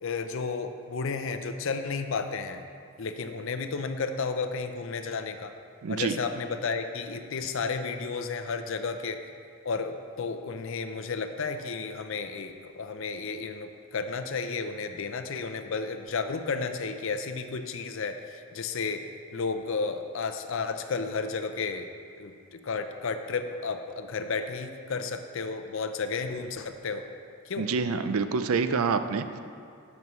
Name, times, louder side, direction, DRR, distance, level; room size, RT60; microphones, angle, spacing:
voice 1, 0.0-2.6 3.0-5.5 5.9-9.2 9.6-19.0 19.3-21.9 22.2-27.0 27.5-27.7, left 4 dB, 60° left, 8 dB, 0.5 m, -32 dB
voice 2, 5.8-6.2 27.6-29.4, right 5 dB, 75° right, 10 dB, 0.4 m, -27 dB
12.0 x 6.2 x 3.1 m, 2.3 s
head